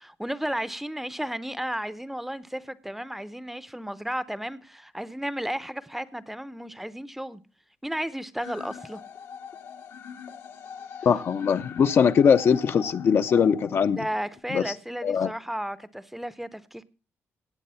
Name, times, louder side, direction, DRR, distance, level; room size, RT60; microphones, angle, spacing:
voice 1, 0.0-7.4 7.8-9.0 13.9-16.8, equal, 5° right, 0.6 m, -33 dB
sound 1, 8.4-14.4, left 7 dB, 85° left, 2.4 m, -42 dB
voice 2, 11.0-14.0 14.5-14.6 15.0-15.3, left 7 dB, 55° left, 0.7 m, -21 dB
18.0 x 7.9 x 5.5 m
cardioid pair, 125°, 5 cm